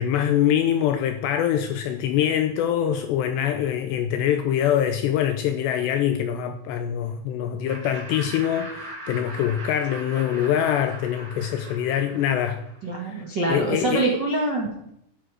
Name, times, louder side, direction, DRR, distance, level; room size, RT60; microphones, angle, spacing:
voice 1, 0.0-12.6 13.0-14.0, left 10 dB, 80° left, 2.5 m, -24 dB
Laughter, 7.7-13.0, right 2 dB, 45° right, 1.2 m, -40 dB
voice 2, 12.8-14.9, right 2 dB, 65° right, 1.0 m, -25 dB
14.0 x 10.5 x 5.0 m
omnidirectional pair, 5.6 m